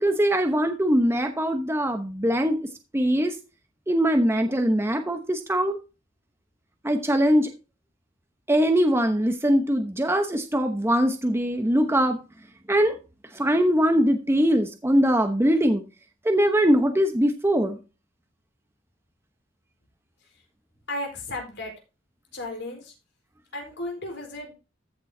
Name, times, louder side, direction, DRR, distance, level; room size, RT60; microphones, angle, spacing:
voice 1, 0.0-2.6 2.9-3.4 3.9-5.8 6.8-7.5 8.5-12.2 12.7-12.9 13.3-15.8 16.2-17.8, equal, 15° right, 5 dB, 0.9 m, -22 dB
voice 2, 20.9-21.7 22.3-22.9 23.5-24.5, left 1 dB, 65° left, 2 dB, 4.5 m, -34 dB
14.5 x 6.8 x 2.7 m, 0.30 s
head